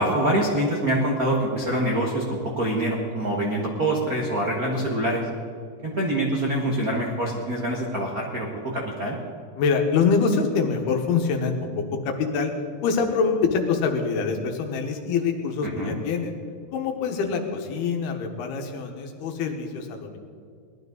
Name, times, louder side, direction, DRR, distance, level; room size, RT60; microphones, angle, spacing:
voice 1, 0.0-5.3 5.8-9.2 15.8-16.0, right 1 dB, 70° right, -2 dB, 0.8 m, -25 dB
voice 2, 9.6-12.5 12.8-16.3 16.7-20.2, left 5 dB, 90° left, 4 dB, 3.3 m, -25 dB
19.0 x 12.0 x 4.0 m, 2.3 s
omnidirectional pair, 4.4 m